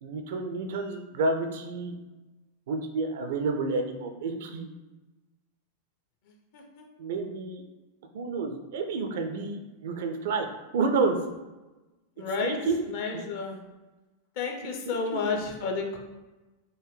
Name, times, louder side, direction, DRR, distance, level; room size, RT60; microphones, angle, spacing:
voice 1, 0.0-2.0 2.7-4.7 7.0-7.6 8.1-10.5 10.7-11.2 12.4-12.8 13.1-13.2 14.9-15.2, right 3 dB, 55° right, 5 dB, 0.4 m, -30 dB
voice 2, 6.2-6.8 12.2-12.6 12.8-13.6 14.4-16.0, left 4 dB, 50° left, 2 dB, 0.6 m, -32 dB
3.8 x 2.1 x 3.1 m, 1.1 s
figure-of-eight pair, 90°, 0 cm